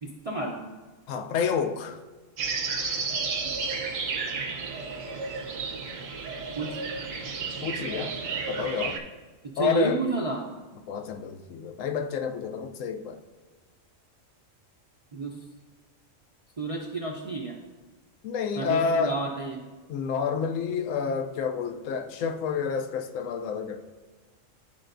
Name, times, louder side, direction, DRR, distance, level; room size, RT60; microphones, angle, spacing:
voice 1, 0.0-0.6 6.6-6.8 9.5-10.4 15.1-15.4 16.6-17.6 18.6-19.6, right 3 dB, 45° right, -1 dB, 0.5 m, -30 dB
voice 2, 1.1-2.0 7.6-8.1 8.5-9.0 9.6-10.0 10.9-13.2 18.2-19.2 19.9-23.8, left 6 dB, 75° left, 7 dB, 0.9 m, -29 dB
sound 1, 2.4-9.0, right 4 dB, 75° right, 1.2 m, -32 dB
11.5 x 4.4 x 2.6 m, 1.3 s
omnidirectional pair, 1.4 m